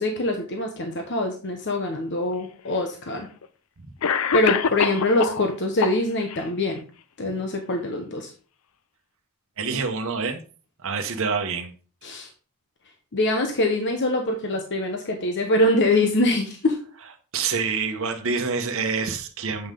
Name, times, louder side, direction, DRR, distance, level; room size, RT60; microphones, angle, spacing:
voice 1, 0.0-3.3 4.3-6.8 7.2-8.3 12.0-12.3 13.1-16.7, left 1 dB, 55° left, 4 dB, 1.0 m, -24 dB
Cough, 2.3-2.4 3.4-3.5 4.0-5.4 5.8-6.4, left 6 dB, 75° left, 0.5 m, -24 dB
voice 2, 9.6-10.4 10.8-11.7 17.3-19.7, right 5 dB, 65° right, 5 dB, 1.0 m, -27 dB
7.9 x 5.5 x 3.7 m, 0.38 s
head